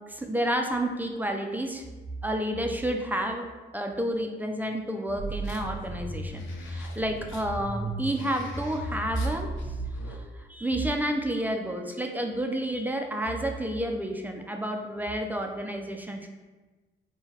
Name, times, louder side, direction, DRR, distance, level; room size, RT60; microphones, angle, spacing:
voice 1, 0.1-1.8 2.2-3.5 3.7-9.5 10.1-16.3, right 1 dB, 10° right, 3 dB, 0.4 m, -30 dB
sound 1, 5.2-10.2, right 1 dB, 75° left, 0.6 m, -36 dB
3.8 x 2.2 x 4.2 m, 1.3 s
cardioid pair, 90°, 20 cm